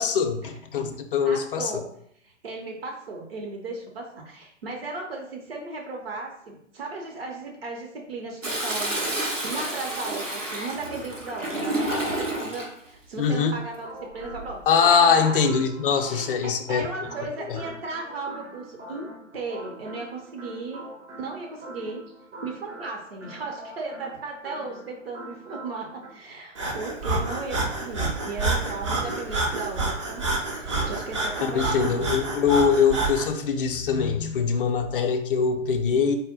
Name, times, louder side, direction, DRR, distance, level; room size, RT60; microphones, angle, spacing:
voice 1, 0.0-1.7 13.2-13.6 14.7-16.9 17.5-17.6 31.4-36.2, left 6 dB, 45° left, 6 dB, 0.5 m, -23 dB
voice 2, 1.2-1.8 2.2-15.7 16.0-19.1 19.3-20.8 21.2-22.0 22.4-32.2, right 3 dB, 50° right, 0 dB, 0.8 m, -36 dB
Toilet flush, 8.4-12.7 14.1-14.6, right 1 dB, 85° right, 1.1 m, -30 dB
sound 1, 13.7-26.1, right 1 dB, 70° right, 1.5 m, -43 dB
Breathing, 26.5-33.3, right 2 dB, 25° right, 0.4 m, -28 dB
4.1 x 2.1 x 3.7 m, 0.70 s
figure-of-eight pair, 115°, 37 cm